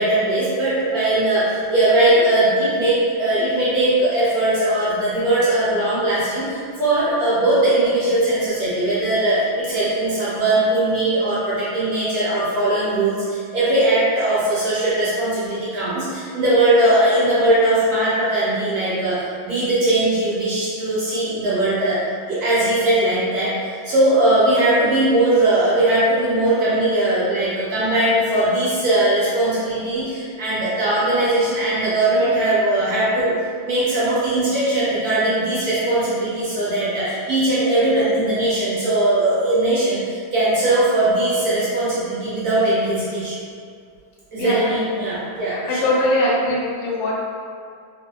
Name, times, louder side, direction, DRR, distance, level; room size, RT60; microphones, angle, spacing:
voice 1, 0.0-22.0 22.3-43.3 44.3-45.9, right 1 dB, 60° right, -10 dB, 1.1 m, -19 dB
voice 2, 45.5-47.1, left 1 dB, 85° left, -4 dB, 1.4 m, -21 dB
2.9 x 2.6 x 2.2 m, 2.2 s
omnidirectional pair, 2.1 m